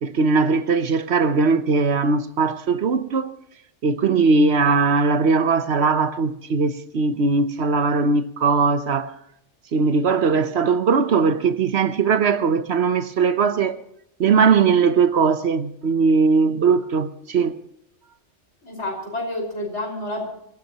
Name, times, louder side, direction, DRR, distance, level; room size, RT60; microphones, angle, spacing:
voice 1, 0.0-3.3 3.8-9.1 9.7-13.8 14.2-17.6, right 4 dB, 65° right, 1.1 m, -19 dB
voice 2, 18.6-20.3, left 1 dB, 70° left, 5.7 m, -29 dB
25.5 x 16.0 x 3.0 m
omnidirectional pair, 1.2 m